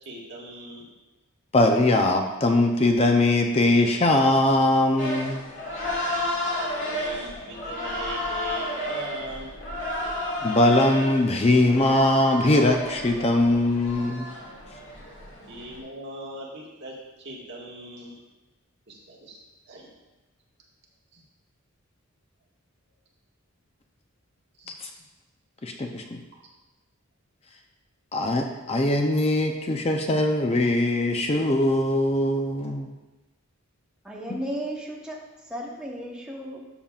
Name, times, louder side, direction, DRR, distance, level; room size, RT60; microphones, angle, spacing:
voice 1, 0.0-0.8 6.4-9.5 15.5-18.2 18.9-19.4 19.7-19.9 21.1-21.2 24.6-25.0, right 1 dB, 50° right, -4 dB, 1.7 m, -40 dB
voice 2, 1.5-5.4 10.4-14.3 25.6-26.2 28.1-32.9, left 1 dB, 25° left, 4 dB, 0.5 m, -21 dB
sound 1, 5.0-15.8, left 1 dB, 60° left, 2.1 m, -32 dB
voice 3, 34.0-35.2 35.5-36.7, equal, 5° right, -3 dB, 1.0 m, -34 dB
12.5 x 7.2 x 2.4 m, 1.1 s
head